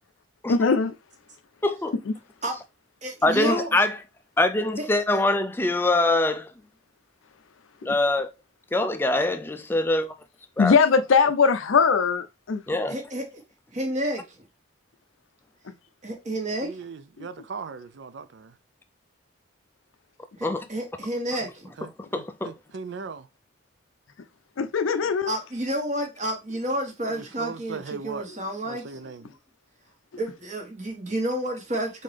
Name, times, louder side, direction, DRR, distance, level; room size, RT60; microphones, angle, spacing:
voice 1, 0.5-0.9 10.6-12.6 24.6-25.3, left 5 dB, 85° left, 0.5 m, -20 dB
voice 2, 1.6-1.9 3.2-3.9 4.4-6.5 7.8-8.3 8.7-10.1 10.6-10.8 12.7-13.0 20.4-20.6 22.1-22.5, left 2 dB, 10° left, 0.4 m, -23 dB
voice 3, 3.0-3.8 4.8-4.9 12.9-13.4 13.7-14.4 16.0-16.7 20.3-21.7 25.3-28.9 30.2-32.0, right 1 dB, 35° right, 1.2 m, -30 dB
voice 4, 16.6-18.6 21.8-23.3 27.1-28.3 28.6-29.3, right 5 dB, 65° right, 0.4 m, -38 dB
4.0 x 3.8 x 3.3 m
head